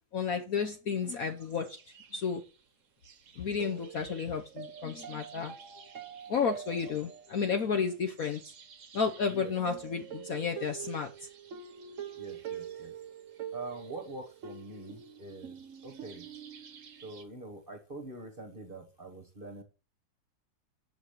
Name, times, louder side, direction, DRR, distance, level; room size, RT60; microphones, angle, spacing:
voice 1, 0.1-1.8 2.1-2.4 3.4-5.5 6.3-8.4 8.9-11.3, left 6 dB, 55° left, 1.1 m, -32 dB
sound 1, 1.3-2.4 3.0-17.2, right 8 dB, 50° right, 1.1 m, -45 dB
voice 2, 12.2-12.9 13.5-15.6 15.8-16.3 17.0-19.6, right 2 dB, 30° right, 1.3 m, -44 dB
7.5 x 6.4 x 6.7 m
omnidirectional pair, 2.2 m